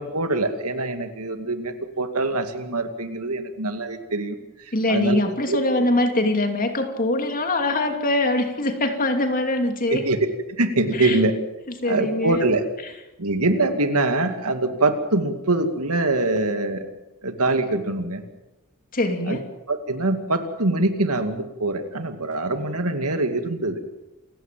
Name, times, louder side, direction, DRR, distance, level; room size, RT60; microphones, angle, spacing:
voice 1, 0.0-5.2 5.5-5.8 9.9-10.3 10.6-11.4 11.8-12.6 13.2-16.9 17.2-18.2 19.3-19.4 19.7-23.8, right 2 dB, 90° right, 7 dB, 2.5 m, -24 dB
voice 2, 4.7-10.0 10.9-11.2 11.8-12.4 18.9-19.4, left 2 dB, 40° left, 5 dB, 2.9 m, -23 dB
28.5 x 16.0 x 7.7 m, 1.0 s
head